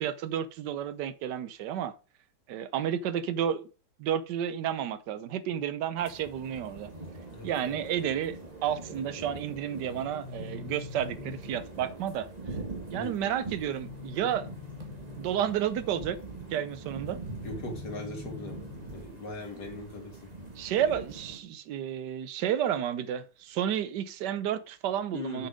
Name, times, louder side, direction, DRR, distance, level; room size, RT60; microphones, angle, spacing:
voice 1, 0.0-1.9 2.5-3.7 4.0-6.9 7.4-12.3 12.9-14.5 15.2-16.2 16.5-17.2 20.6-25.5, right 9 dB, 85° right, 1.3 m, -31 dB
sound 1, 6.0-21.4, right 3 dB, 25° right, 1.7 m, -43 dB
voice 2, 7.3-7.9 12.9-13.2 17.4-20.3 25.1-25.5, left 2 dB, 70° left, 2.8 m, -40 dB
sound 2, 9.8-11.8 13.5-15.4 17.2-19.1, left 6 dB, 55° right, 2.4 m, -45 dB
7.1 x 5.9 x 5.1 m
omnidirectional pair, 1.8 m